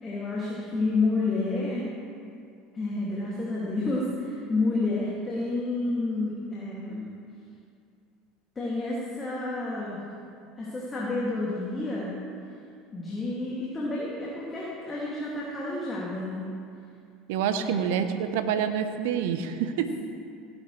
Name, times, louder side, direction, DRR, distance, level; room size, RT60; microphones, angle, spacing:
voice 1, 0.0-1.8 2.7-7.1 8.6-10.0 10.6-12.1 12.9-16.5 17.6-17.8, left 2 dB, 25° left, -6 dB, 2.4 m, -30 dB
voice 2, 17.3-19.9, right 8 dB, 70° right, 9 dB, 0.8 m, -27 dB
16.5 x 9.9 x 3.3 m, 2.5 s
hypercardioid pair, 75°, 0 cm